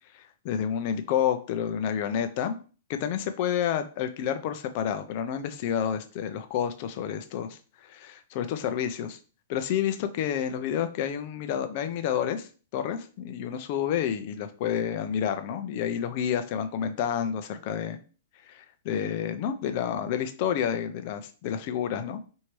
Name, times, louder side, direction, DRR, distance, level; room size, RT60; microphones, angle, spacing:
voice 1, 0.1-2.6 2.9-9.2 9.5-18.0 18.5-22.2, left 9 dB, 40° left, 9 dB, 0.5 m, -29 dB
4.5 x 2.7 x 3.1 m, 0.37 s
hypercardioid pair, 155°, 0 cm